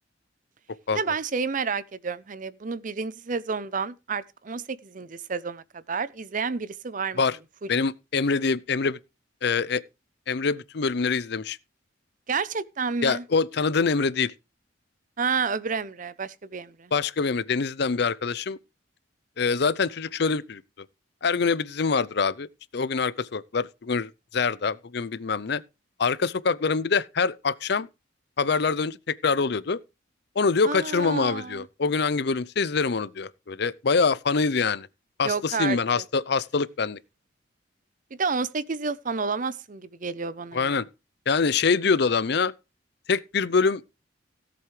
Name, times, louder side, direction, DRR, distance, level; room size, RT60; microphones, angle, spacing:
voice 1, 0.9-7.2 12.3-13.2 15.2-16.9 30.6-31.7 35.2-36.0 38.2-40.7, right 5 dB, 45° right, 0.6 m, -30 dB
voice 2, 7.7-9.0 9.4-9.8 10.3-11.6 13.0-14.3 16.9-18.6 19.4-20.6 21.2-22.5 22.7-25.6 26.0-27.9 28.4-29.8 30.4-34.9 35.2-37.0 40.5-40.9 41.3-42.5 43.1-43.8, left 5 dB, 60° left, 0.6 m, -25 dB
17.5 x 7.8 x 3.2 m
head